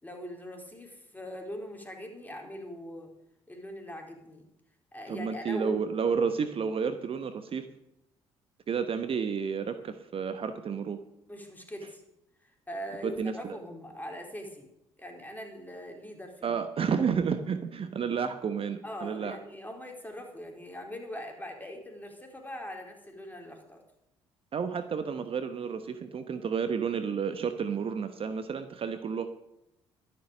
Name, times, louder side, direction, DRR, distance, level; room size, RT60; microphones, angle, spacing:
voice 1, 0.0-3.1 3.5-4.4 4.9-5.8 11.3-12.0 12.4-14.7 15.0-16.6 18.8-23.8, equal, 10° left, 2 dB, 4.1 m, -41 dB
voice 2, 5.1-7.6 8.7-11.0 13.0-13.6 16.4-19.4 24.5-29.3, right 6 dB, 40° right, 9 dB, 1.0 m, -31 dB
12.5 x 11.0 x 6.7 m, 0.85 s
figure-of-eight pair, 50°, 14 cm